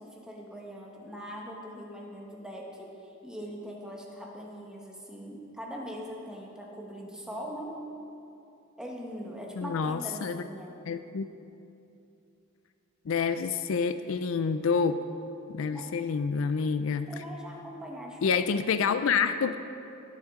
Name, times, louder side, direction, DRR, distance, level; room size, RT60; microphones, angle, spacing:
voice 1, 0.0-7.8 8.8-10.8 15.7-15.9 17.1-18.4, equal, 5° right, -2 dB, 1.3 m, -41 dB
voice 2, 9.6-10.4 10.9-11.3 13.1-15.0 15.5-17.1 18.2-19.6, left 5 dB, 70° left, 11 dB, 0.4 m, -28 dB
18.5 x 7.4 x 3.7 m, 2.7 s
head